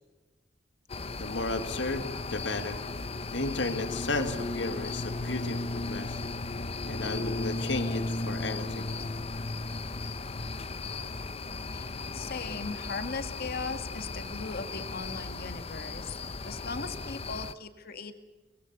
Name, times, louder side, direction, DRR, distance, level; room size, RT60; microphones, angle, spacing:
sound 1, 0.9-17.5, left 2 dB, 35° left, 0.8 m, -35 dB
voice 1, 1.2-2.8 3.3-6.2 6.9-8.9, left 2 dB, 85° left, 8 dB, 2.0 m, -34 dB
voice 2, 12.1-18.1, left 4 dB, 55° left, 8 dB, 1.9 m, -38 dB
23.5 x 21.5 x 8.2 m, 1.2 s
head